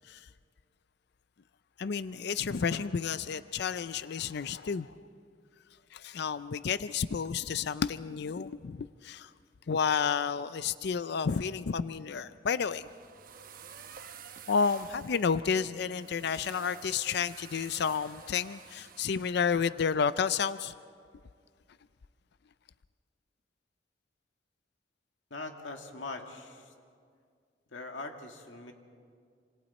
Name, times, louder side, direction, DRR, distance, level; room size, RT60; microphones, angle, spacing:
voice 1, 1.8-4.9 5.9-9.3 9.7-12.9 14.5-20.7, left 6 dB, 60° left, 14 dB, 0.4 m, -31 dB
sound 1, 12.5-19.4, right 7 dB, 50° right, 0.9 m, -51 dB
voice 2, 25.3-26.7 27.7-28.7, left 3 dB, 90° left, 4 dB, 2.0 m, -42 dB
27.0 x 26.5 x 4.3 m, 2.2 s
head